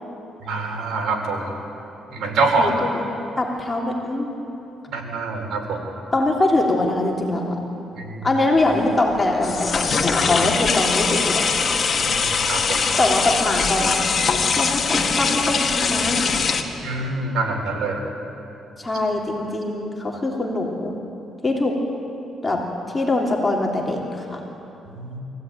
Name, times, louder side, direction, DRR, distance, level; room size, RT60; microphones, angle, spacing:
voice 1, 0.4-1.5 2.1-2.7 4.9-5.8 8.0-8.3 12.0-12.2 12.5-12.8 16.8-18.0 24.9-25.2, right 3 dB, 70° right, 1 dB, 4.2 m, -25 dB
voice 2, 2.6-3.0 3.4-4.3 6.1-7.6 8.2-11.5 13.0-14.0 14.3-16.2 18.8-20.9 21.4-21.8 22.4-22.6 22.9-24.4, left 2 dB, 20° left, -1 dB, 3.1 m, -23 dB
sound 1, 8.6-16.6, left 5 dB, 45° left, 1.9 m, -22 dB
23.5 x 16.0 x 9.1 m, 2.9 s
cardioid pair, 90°, 0 cm